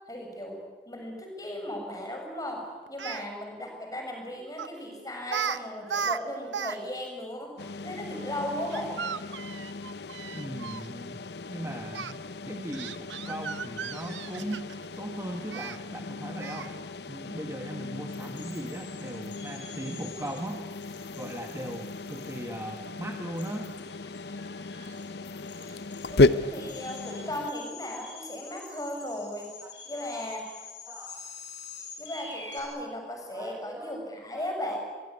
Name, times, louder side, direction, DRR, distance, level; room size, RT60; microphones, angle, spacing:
voice 1, 0.1-0.6 0.9-9.0 26.1-29.5 29.9-30.4 32.0-34.8, left 1 dB, 20° left, 2 dB, 6.5 m, -36 dB
Speech, 2.9-3.2 4.6-4.8 5.3-5.6 5.8-6.8 7.0-7.1 8.7-10.9 11.9-12.1 12.7-14.9 15.5-15.8 16.4-16.8, right 7 dB, 90° right, 1.0 m, -35 dB
sound 1, 7.6-27.5, left 2 dB, 65° left, 0.8 m, -34 dB
voice 2, 10.3-14.7 15.0-16.8 17.1-20.7 21.2-23.7 29.6-30.1 30.9-31.2 33.3-34.0 34.3-34.8, right 1 dB, 15° right, 3 dB, 1.5 m, -39 dB
sound 2, 18.1-32.6, left 5 dB, 90° left, 7.5 m, -47 dB
25.0 x 22.5 x 9.7 m, 1.4 s
head